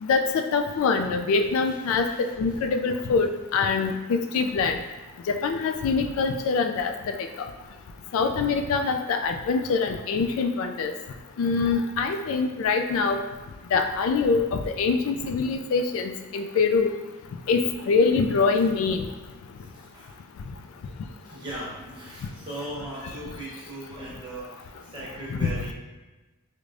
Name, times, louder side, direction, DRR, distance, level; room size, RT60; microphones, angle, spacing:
voice 1, 0.0-4.8 5.3-7.1 8.1-10.9 11.4-13.2 13.7-16.9 17.5-19.1 25.3-25.7, left 4 dB, 75° left, 5 dB, 0.3 m, -24 dB
voice 2, 2.0-2.6 11.0-11.2 19.6-20.2 21.2-25.7, right 1 dB, 20° right, -6 dB, 1.0 m, -39 dB
4.7 x 2.2 x 2.5 m, 1.2 s
head